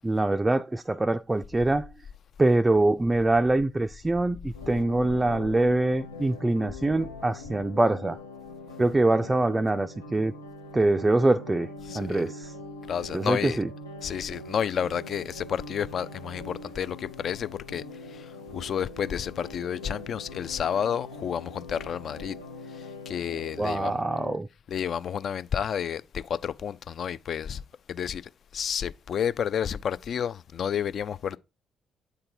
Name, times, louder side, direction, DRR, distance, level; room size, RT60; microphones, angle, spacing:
voice 1, 0.0-1.9 2.4-8.2 8.8-10.3 10.7-11.7 11.9-12.5 13.1-13.7 23.6-24.5, right 2 dB, 20° right, 0.3 m, -24 dB
sound 1, 4.5-24.4, left 2 dB, 90° left, 0.7 m, -42 dB
voice 2, 11.8-12.2 12.9-13.6 14.0-22.4 22.7-24.0 24.7-27.6 27.9-28.2 28.5-31.4, left 8 dB, 50° left, 0.4 m, -31 dB
8.1 x 3.8 x 4.4 m
figure-of-eight pair, 45°, 0 cm